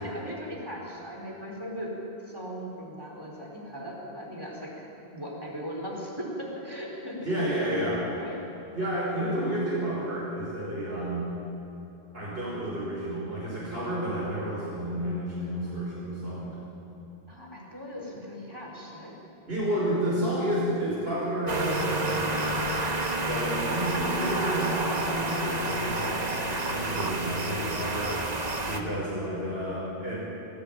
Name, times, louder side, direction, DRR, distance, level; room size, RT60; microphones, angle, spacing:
voice 1, 0.0-1.9 2.2-4.9 5.1-7.3 8.1-8.4 17.3-19.1 23.7-25.2 29.1-29.6, equal, 20° right, -3 dB, 4.6 m, -39 dB
voice 2, 7.2-8.1 8.7-11.3 12.1-16.6 19.5-22.7 23.2-28.2 28.7-30.3, right 1 dB, 65° right, -7 dB, 5.8 m, -31 dB
sound 1, 21.5-28.8, right 2 dB, 40° right, 1.6 m, -29 dB
21.0 x 16.5 x 9.0 m, 3.0 s
omnidirectional pair, 1.1 m